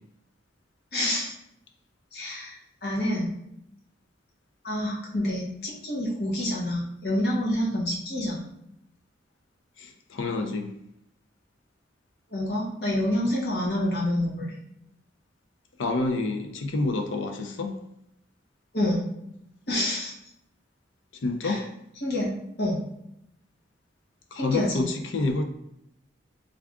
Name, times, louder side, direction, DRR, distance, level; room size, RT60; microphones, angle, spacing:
voice 1, 0.9-1.3 2.1-3.3 4.6-8.4 12.3-14.5 18.7-19.3 19.7-20.1 21.4-21.6 22.0-22.8 24.4-24.9, left 1 dB, 55° left, -5 dB, 1.1 m, -28 dB
voice 2, 9.8-10.7 15.8-17.7 21.2-21.6 24.3-25.4, left 2 dB, 90° left, 4 dB, 0.5 m, -28 dB
3.4 x 2.4 x 3.5 m, 0.79 s
head